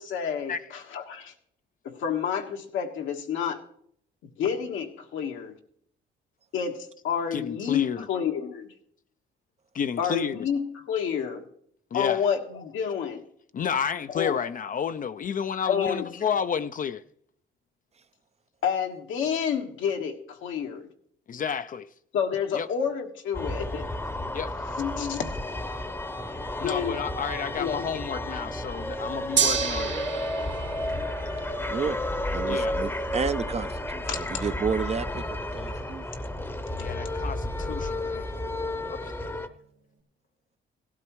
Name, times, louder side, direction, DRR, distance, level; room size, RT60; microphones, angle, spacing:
voice 1, 0.0-1.3 1.8-3.6 4.2-5.5 6.5-8.7 10.0-11.5 11.9-13.2 14.1-14.4 15.7-16.1 18.6-20.9 22.1-23.9 24.8-25.3 26.6-27.3 27.6-27.9 32.4-32.5 34.1-34.4, left 7 dB, 80° left, 1.5 m, -29 dB
voice 2, 7.3-8.1 9.7-10.5 11.9-12.2 13.5-17.0 21.3-21.9 22.5-22.7 24.3-24.5 26.6-30.0 32.4-32.7 36.8-38.3 38.9-39.1, left 7 dB, 45° left, 0.5 m, -31 dB
sound 1, 23.3-39.5, left 1 dB, 10° left, 0.8 m, -32 dB
Gong, 29.4-39.6, right 7 dB, 65° right, 1.7 m, -35 dB
voice 3, 32.3-35.2 35.5-36.0 38.8-38.9, right 5 dB, 35° right, 0.5 m, -31 dB
17.0 x 12.0 x 3.1 m
cardioid pair, 90°, 20 cm